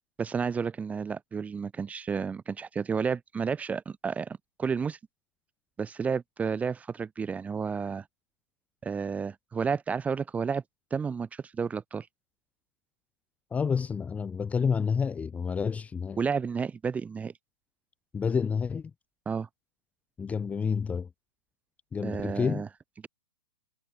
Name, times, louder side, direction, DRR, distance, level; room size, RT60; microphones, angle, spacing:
voice 1, 0.2-5.0 5.8-8.0 8.8-10.6 10.9-12.1 16.2-17.3 19.3-19.5 22.0-22.7, right 6 dB, 10° right, 1.1 m, -31 dB
voice 2, 13.5-16.2 18.1-18.9 20.2-21.1 21.9-22.6, left 6 dB, 10° left, 0.8 m, -29 dB
hypercardioid pair, 130°, 13 cm